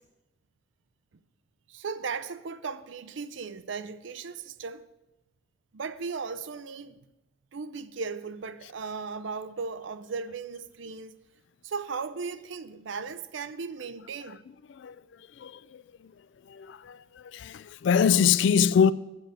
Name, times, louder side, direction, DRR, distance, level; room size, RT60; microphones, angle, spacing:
voice 1, 1.7-4.9 5.7-7.0 7.5-11.2 11.6-14.4, right 5 dB, 70° right, 0.5 m, -36 dB
voice 2, 16.5-17.0 17.3-18.9, left 7 dB, 65° left, 0.3 m, -23 dB
7.7 x 6.3 x 7.8 m
head